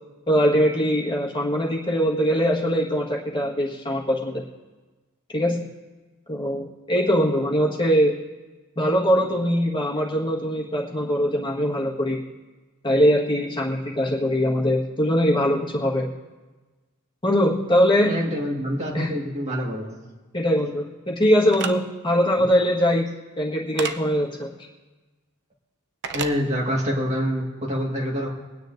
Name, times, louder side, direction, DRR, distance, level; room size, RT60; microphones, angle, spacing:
voice 1, 0.3-4.4 5.3-5.6 6.3-8.1 8.8-12.2 12.8-16.1 17.2-18.1 18.9-19.1 20.3-23.1 23.4-24.5, equal, 20° left, -3 dB, 1.5 m, -22 dB
voice 2, 18.0-20.0 26.1-28.3, equal, 30° right, -1 dB, 1.8 m, -26 dB
sound 1, 21.5-21.7 23.8-24.0 26.0-26.3, right 6 dB, 55° right, 0.6 m, -29 dB
23.5 x 9.6 x 2.6 m, 1.2 s
head